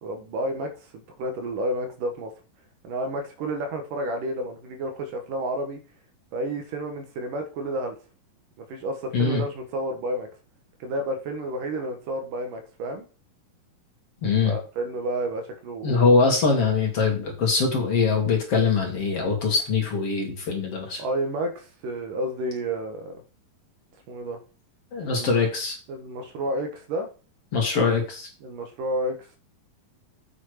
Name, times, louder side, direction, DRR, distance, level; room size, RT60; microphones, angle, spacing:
voice 1, 0.0-2.3 2.8-5.8 6.3-8.0 8.7-10.3 10.8-13.0 14.4-16.0 21.0-23.2 24.1-24.4 25.1-25.4 25.9-27.1 28.4-29.4, right 1 dB, 70° right, 5 dB, 3.0 m, -30 dB
voice 2, 14.2-14.5 15.8-21.0 24.9-25.8 27.5-28.3, left 4 dB, 45° left, 1 dB, 2.8 m, -22 dB
8.4 x 6.1 x 4.9 m, 0.36 s
omnidirectional pair, 4.0 m